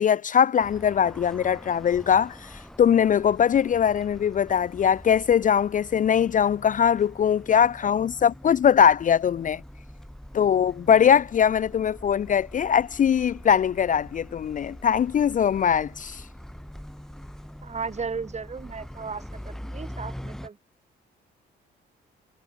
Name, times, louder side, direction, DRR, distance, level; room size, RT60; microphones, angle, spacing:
voice 1, 0.0-9.6 10.3-16.2, left 8 dB, 40° left, 0.5 m, -21 dB
sound 1, 0.6-20.5, equal, ahead, 3.4 m, -43 dB
voice 2, 17.6-20.6, right 5 dB, 35° right, 4.7 m, -35 dB
cardioid pair, 90°, 20 cm